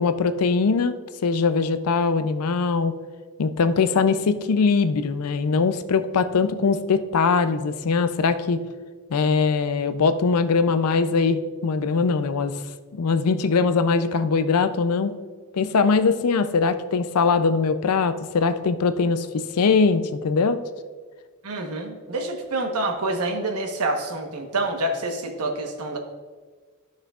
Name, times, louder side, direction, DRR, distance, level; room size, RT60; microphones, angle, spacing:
voice 1, 0.0-2.9 3.4-8.7 9.1-12.6 12.9-15.2 15.5-20.7, left 4 dB, 80° left, 11 dB, 0.5 m, -21 dB
voice 2, 21.4-26.0, right 2 dB, 85° right, 3 dB, 1.1 m, -27 dB
13.5 x 6.3 x 2.4 m, 1.5 s
head